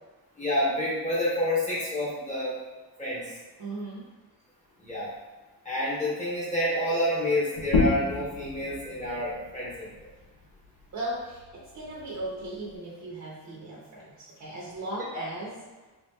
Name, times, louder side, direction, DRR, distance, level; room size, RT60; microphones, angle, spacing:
voice 1, 0.4-2.5 3.0-3.2 4.8-5.1 5.6-9.9 15.1-15.2, left 1 dB, 20° left, -8 dB, 0.9 m, -28 dB
voice 2, 3.6-4.0 10.9-15.6, right 1 dB, 45° right, -5 dB, 0.6 m, -37 dB
sound 1, 7.5-12.8, left 3 dB, 70° left, 0.7 m, -32 dB
3.4 x 2.9 x 2.2 m, 1.2 s
wide cardioid pair, 180°, 41 cm